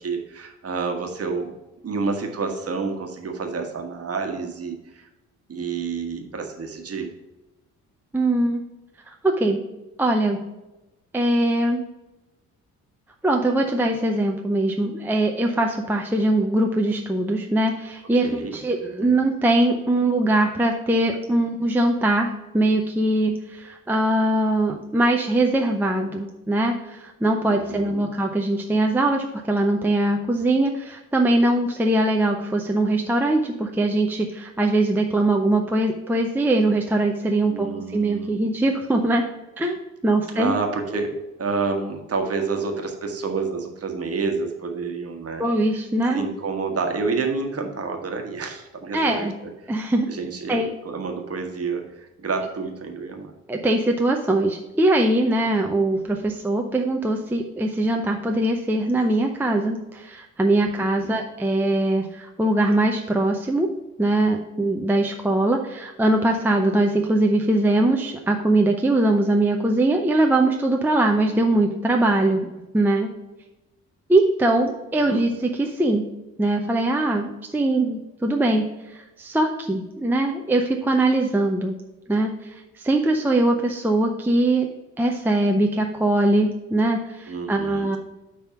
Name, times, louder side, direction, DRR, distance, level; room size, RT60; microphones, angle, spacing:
voice 1, 0.0-1.5 1.8-5.1 5.5-7.1 18.2-18.6 19.0-19.2 27.4-28.1 37.4-38.3 40.3-45.5 46.1-49.7 50.1-53.3 61.0-61.1 75.0-75.2 87.3-88.0, right 4 dB, 35° right, 3 dB, 1.3 m, -29 dB
voice 2, 8.1-8.6 9.2-9.6 10.0-10.4 11.1-11.8 13.2-39.2 39.6-39.8 40.0-40.6 45.4-46.3 48.9-49.3 49.7-50.1 50.5-50.7 53.5-63.7 64.0-72.5 72.7-73.1 74.1-76.0 76.4-78.7 78.9-81.7 82.1-84.7 85.0-88.0, right 1 dB, 5° right, 2 dB, 0.6 m, -21 dB
9.5 x 3.4 x 5.7 m, 1.0 s
figure-of-eight pair, 40°, 43 cm